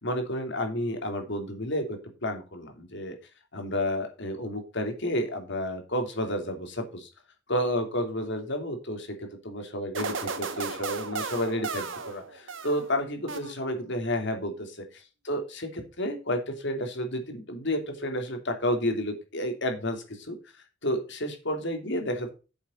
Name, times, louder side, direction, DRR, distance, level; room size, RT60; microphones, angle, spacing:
voice 1, 0.0-3.2 3.5-7.1 7.5-14.8 15.2-20.4 20.8-22.3, left 1 dB, 60° left, 5 dB, 2.9 m, -31 dB
sound 1, 9.9-12.9 13.3-13.9, right 4 dB, 70° right, 1.7 m, -35 dB
9.2 x 7.2 x 4.4 m, 0.31 s
head